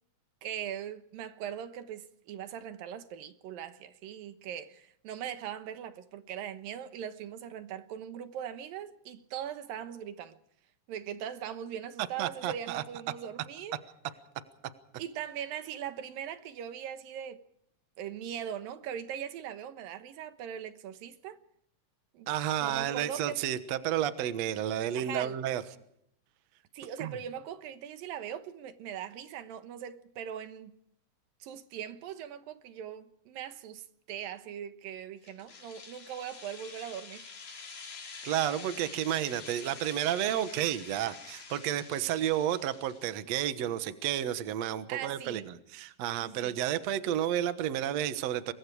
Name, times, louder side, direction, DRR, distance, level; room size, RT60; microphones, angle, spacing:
voice 1, 0.4-10.4 10.9-13.8 15.0-17.4 18.0-21.4 22.1-22.3 22.6-23.4 24.9-25.4 26.7-30.7 31.4-37.2 44.9-45.5 46.2-46.6, right 9 dB, 85° right, 3.0 m, -40 dB
voice 2, 12.2-12.8 22.3-25.6 27.0-27.2 38.2-48.5, right 11 dB, 60° right, 2.1 m, -31 dB
sound 1, 35.3-43.1, left 5 dB, 75° left, 5.5 m, -47 dB
27.0 x 22.5 x 4.8 m
omnidirectional pair, 3.9 m